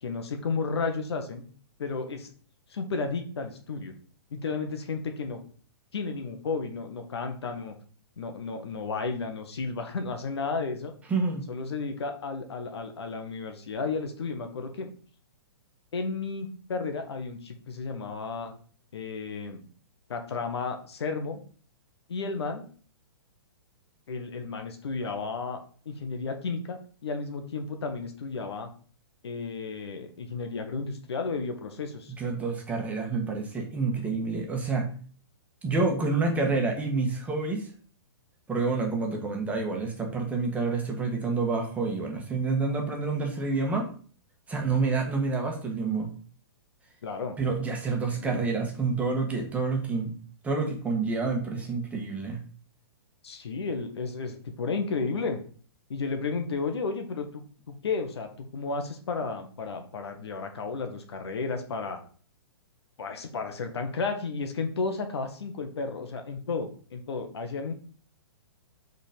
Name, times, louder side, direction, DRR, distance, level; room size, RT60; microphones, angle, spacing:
voice 1, 0.0-1.4 1.8-2.3 2.7-3.9 4.3-5.4 5.9-7.7 8.2-10.9 11.5-14.9 15.9-18.5 18.9-19.6 20.1-21.4 22.1-22.6 24.1-25.6 25.8-28.7 29.2-32.1 47.0-47.4 47.9-48.4 53.2-55.4 55.9-62.0 63.0-67.7, left 4 dB, 80° left, 6 dB, 1.3 m, -33 dB
voice 2, 11.1-11.5 32.2-34.9 35.6-37.7 38.5-43.9 44.5-46.1 47.4-50.1 50.4-52.4, right 4 dB, 10° right, 1 dB, 1.4 m, -28 dB
5.2 x 4.0 x 5.1 m, 0.44 s
hypercardioid pair, 140°, 14 cm